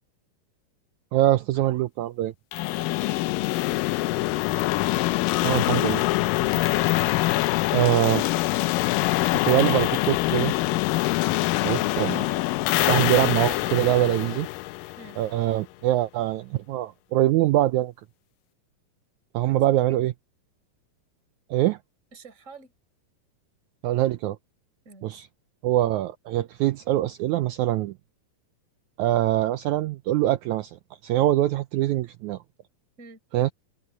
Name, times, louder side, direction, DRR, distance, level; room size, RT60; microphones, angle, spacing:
voice 1, 1.1-2.3 5.4-6.0 7.7-8.3 9.4-10.5 11.6-12.3 12.9-14.5 15.2-17.9 19.3-20.1 21.5-21.8 23.8-24.4 25.0-25.3 25.6-27.9 29.0-30.8 31.0-32.4 33.3-33.5, right 14 dB, 90° right, 1.7 m, -23 dB
sound 1, 2.5-15.4, left 18 dB, 80° left, 2.2 m, -24 dB
voice 2, 2.8-4.5 15.0-15.2 19.5-19.6 19.9-20.0 22.1-22.7 24.8-25.2 33.0-33.2, right 3 dB, 20° right, 4.3 m, -48 dB
open air
omnidirectional pair, 4.1 m